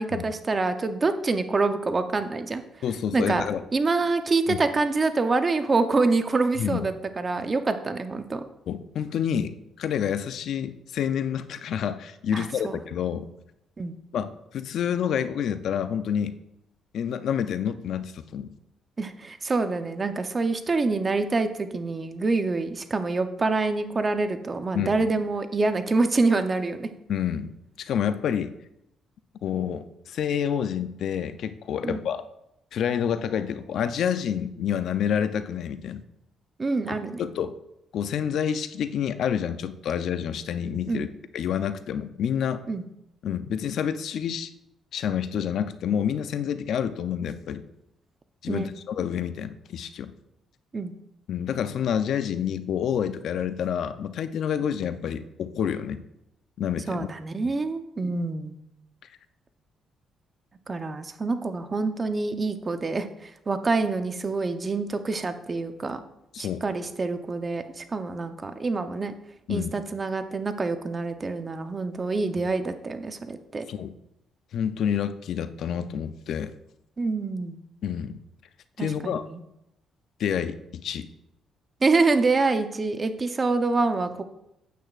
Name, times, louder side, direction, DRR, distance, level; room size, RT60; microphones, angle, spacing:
voice 1, 0.0-2.6 3.1-3.4 3.7-8.4 12.3-12.8 13.8-14.0 19.0-26.9 31.8-32.0 36.6-37.3 40.9-41.1 42.7-42.8 48.5-48.7 50.7-50.9 56.9-58.6 60.7-66.0 66.4-69.1 69.5-73.7 77.0-77.6 78.8-79.4 81.8-84.2, right 3 dB, 30° right, 9 dB, 0.7 m, -26 dB
voice 2, 2.8-3.6 4.5-4.6 6.6-6.8 8.7-13.3 14.1-16.4 16.9-18.5 24.7-24.9 27.1-27.5 27.8-28.5 29.4-32.2 32.7-36.0 36.9-37.5 37.9-41.1 41.3-42.6 43.2-44.5 44.9-47.6 48.4-50.1 51.3-56.0 56.6-57.1 57.4-57.5 66.3-66.6 69.5-69.7 73.7-74.0 74.5-76.5 77.8-78.2 78.8-79.3 80.2-81.1, left 8 dB, 70° left, 11 dB, 0.5 m, -28 dB
9.2 x 7.9 x 2.4 m, 0.82 s
cardioid pair, 90°, 0 cm